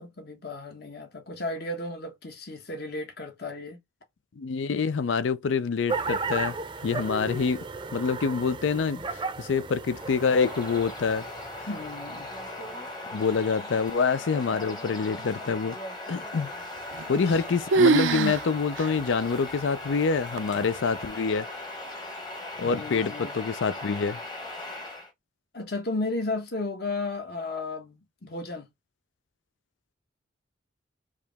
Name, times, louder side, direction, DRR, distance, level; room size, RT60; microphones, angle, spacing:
voice 1, 0.0-3.8 11.7-12.3 17.0-17.4 22.6-23.4 25.5-28.7, left 2 dB, 55° left, 1.3 m, -34 dB
voice 2, 4.4-6.5 6.8-7.6 7.9-11.2 13.1-15.8 16.1-16.5 17.1-21.5 22.6-24.2, left 5 dB, 80° left, 0.5 m, -26 dB
sound 1, 5.9-12.9, right 4 dB, 25° right, 0.5 m, -35 dB
Bird vocalization bird call bird song, 9.8-25.1, left 2 dB, 20° left, 1.1 m, -39 dB
sound 2, 16.9-17.4 17.7-18.4 18.8-18.9 19.5-19.6 20.4-20.8, right 4 dB, 80° right, 0.4 m, -22 dB
4.8 x 2.9 x 3.5 m
head